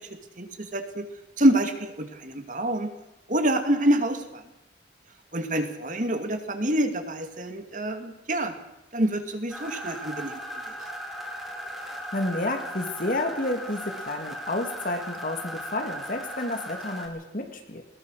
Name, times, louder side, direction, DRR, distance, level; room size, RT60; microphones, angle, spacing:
voice 1, 0.4-1.0 1.4-2.9 3.3-4.4 5.3-8.5 8.9-10.4 10.7-10.8, right 1 dB, 45° right, 6 dB, 2.3 m, -26 dB
sound 1, 9.5-17.1, equal, ahead, 3.6 m, -37 dB
voice 2, 11.7-17.8, left 2 dB, 50° left, 5 dB, 2.6 m, -30 dB
20.5 x 19.5 x 6.6 m, 0.94 s
head